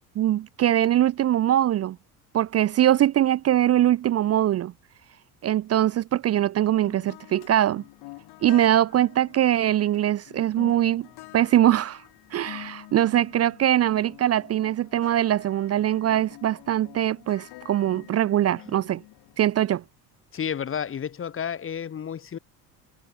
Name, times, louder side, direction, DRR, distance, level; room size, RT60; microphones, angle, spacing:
voice 1, 0.2-2.0 2.3-4.7 5.4-7.8 8.4-11.1 11.3-12.0 12.3-19.0 19.4-19.8, right 12 dB, 35° right, 0.7 m, -22 dB
sound 1, 6.8-19.8, left 20 dB, 55° left, 2.4 m, -47 dB
voice 2, 20.3-22.4, left 8 dB, 30° left, 1.1 m, -31 dB
figure-of-eight pair, 55°, 45 cm